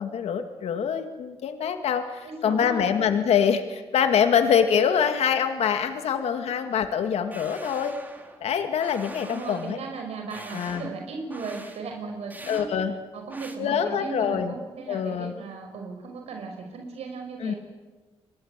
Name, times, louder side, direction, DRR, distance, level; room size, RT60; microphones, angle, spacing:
voice 1, 0.0-8.0 8.4-9.8 10.5-10.9 12.5-12.9 13.6-14.5 14.9-15.3 17.4-17.5, left 7 dB, 80° left, 7 dB, 2.2 m, -24 dB
voice 2, 2.2-2.8 9.2-12.7 13.1-17.6, right 4 dB, 80° right, 3 dB, 5.8 m, -36 dB
sound 1, 7.3-8.4 8.8-9.8 10.3-11.0 11.3-11.8 12.3-12.7 13.3-13.6, right 2 dB, 15° right, 3.7 m, -44 dB
29.5 x 22.5 x 8.3 m, 1.3 s
cardioid pair, 105°, 11 cm